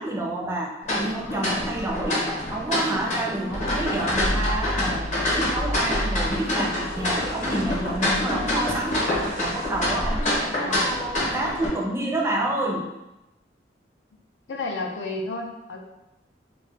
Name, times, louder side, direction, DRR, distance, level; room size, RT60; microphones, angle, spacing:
voice 1, 0.0-9.0 9.4-12.9, right 1 dB, 15° right, -1 dB, 0.4 m, -29 dB
sound 1, 0.8-11.7, left 1 dB, 45° left, 0.8 m, -27 dB
sound 2, 3.5-9.9, equal, 90° right, 0.6 m, -33 dB
voice 2, 10.4-10.9 14.5-15.8, left 2 dB, 75° left, 1 dB, 0.4 m, -32 dB
2.3 x 2.0 x 3.7 m, 0.97 s
head